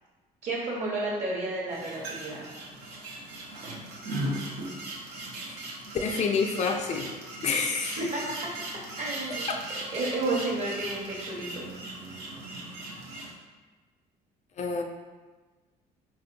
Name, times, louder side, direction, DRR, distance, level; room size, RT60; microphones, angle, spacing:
voice 1, 0.4-2.4 8.0-8.5 9.0-9.5 9.9-11.7, right 2 dB, 45° right, -4 dB, 1.2 m, -31 dB
sound 1, 1.7-13.3, right 1 dB, 80° right, 0.8 m, -38 dB
voice 2, 6.0-7.1 7.4-8.0 14.6-14.8, left 5 dB, 45° left, 2 dB, 0.4 m, -28 dB
4.3 x 2.7 x 2.6 m, 1.3 s
cardioid pair, 110°, 17 cm